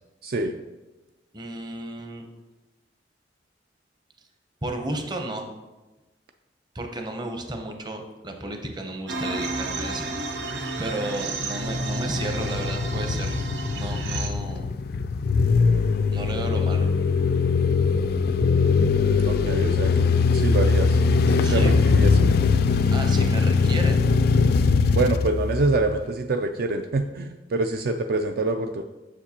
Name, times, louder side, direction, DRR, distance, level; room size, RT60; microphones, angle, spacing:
voice 1, 0.2-0.5 19.3-21.0 21.3-22.3 24.9-28.8, right 2 dB, 55° right, 6 dB, 0.3 m, -26 dB
voice 2, 1.3-2.3 4.6-5.5 6.7-13.4 13.7-14.7 16.1-16.9 21.4-21.8 22.7-24.1, right 1 dB, 25° right, 4 dB, 0.7 m, -33 dB
sound 1, 9.1-14.3, right 2 dB, 75° right, 0.8 m, -31 dB
sound 2, 11.7-26.0, left 4 dB, 55° left, 0.3 m, -21 dB
7.2 x 6.5 x 2.9 m, 1.1 s
head